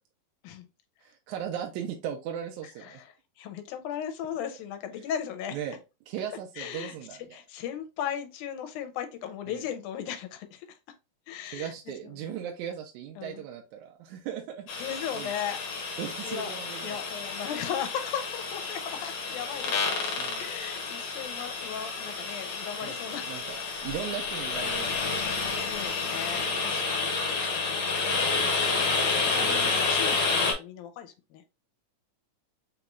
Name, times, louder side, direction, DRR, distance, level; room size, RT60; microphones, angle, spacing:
voice 1, 1.0-3.0 5.5-5.8 6.1-7.4 9.5-9.6 11.5-15.3 16.0-17.0 20.2-20.5 22.8-23.4 23.8-25.1 26.3-26.7 29.3-29.8, right 9 dB, 80° right, 2.0 m, -38 dB
voice 2, 2.8-5.6 6.6-7.0 7.3-10.8 11.3-11.7 12.2-12.3 13.2-13.4 14.8-15.6 16.2-16.5 16.8-23.3 23.7-23.9 25.6-27.2 27.5-31.4, left 9 dB, 85° left, 2.1 m, -37 dB
sound 1, 14.7-30.5, left 4 dB, 65° left, 2.1 m, -30 dB
5.5 x 3.0 x 2.4 m
omnidirectional pair, 3.5 m